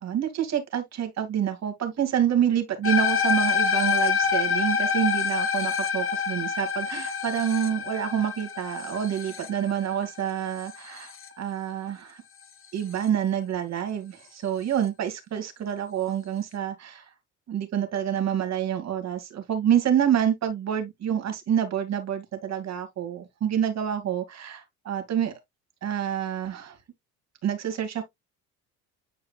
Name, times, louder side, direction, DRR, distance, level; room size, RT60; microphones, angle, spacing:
voice 1, 0.0-12.2 12.7-17.1 17.5-25.3 25.8-26.8 27.4-28.0, right 9 dB, 45° right, 2.4 m, -27 dB
sound 1, 2.8-11.3, left 6 dB, 35° left, 1.4 m, -26 dB
9.3 x 4.7 x 2.4 m
hypercardioid pair, 70°, 36 cm